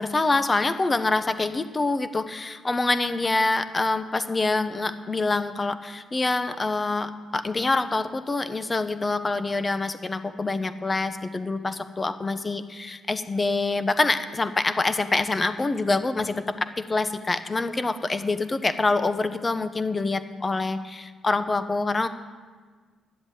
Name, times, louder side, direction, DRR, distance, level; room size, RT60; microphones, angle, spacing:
voice 1, 0.0-16.4 16.8-22.1, left 3 dB, 25° left, 11 dB, 0.8 m, -26 dB
11.0 x 7.9 x 9.2 m, 1.5 s
cardioid pair, 90°, 0 cm